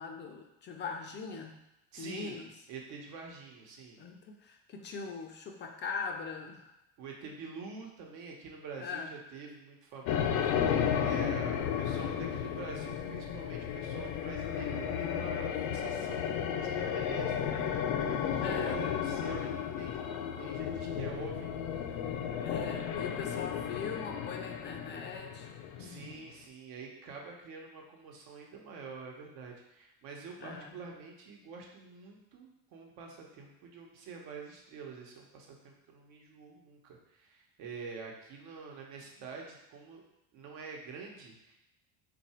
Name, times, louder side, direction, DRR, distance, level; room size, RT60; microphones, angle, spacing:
voice 1, 0.0-1.6 2.0-2.5 4.0-6.7 8.8-9.1 18.4-18.8 22.4-25.5 25.8-26.1 30.4-30.8, left 5 dB, 30° left, 3 dB, 0.4 m, -41 dB
voice 2, 1.9-4.0 7.0-21.9 25.8-40.0 40.3-41.5, right 4 dB, 70° right, 0 dB, 1.0 m, -46 dB
sound 1, 10.0-26.3, left 8 dB, 75° left, 0.5 m, -33 dB
3.7 x 2.5 x 4.2 m, 0.89 s
cardioid pair, 125°, 42 cm